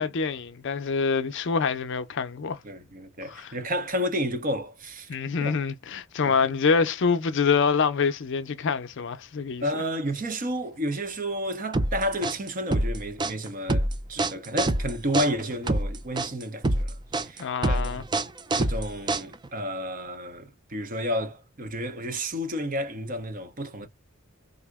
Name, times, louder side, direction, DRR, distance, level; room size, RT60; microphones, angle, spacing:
voice 1, 0.0-2.6 3.3-3.5 5.1-9.8 17.4-18.0, left 5 dB, 55° left, 0.5 m, -26 dB
voice 2, 2.6-5.1 5.4-5.5 6.2-6.5 9.6-18.0 18.6-23.9, equal, 40° right, 0.7 m, -31 dB
sound 1, 11.7-19.6, right 2 dB, 20° right, 0.3 m, -26 dB
3.6 x 2.1 x 3.4 m
head